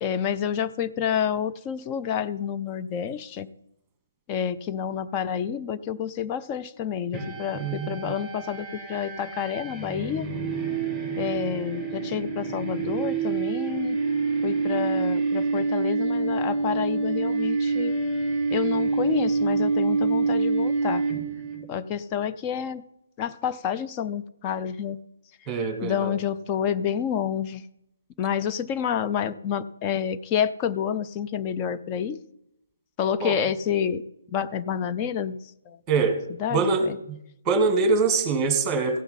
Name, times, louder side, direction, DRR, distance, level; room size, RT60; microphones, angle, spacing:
voice 1, 0.0-3.5 4.3-10.3 11.2-14.0 14.4-17.9 18.5-21.0 21.7-22.8 23.2-25.0 25.8-27.6 28.2-32.2 33.0-34.0 34.3-35.4 35.7-35.8 36.4-37.0, left 8 dB, 25° left, 10 dB, 0.4 m, -29 dB
sound 1, 7.1-21.6, right 4 dB, 5° left, 2.6 m, -27 dB
voice 2, 7.5-8.1 25.5-26.2 33.2-33.4 35.9-36.3 36.5-37.2 37.5-39.0, right 4 dB, 15° right, 6 dB, 1.9 m, -24 dB
16.0 x 5.7 x 5.7 m, 0.82 s
figure-of-eight pair, 140°, 0 cm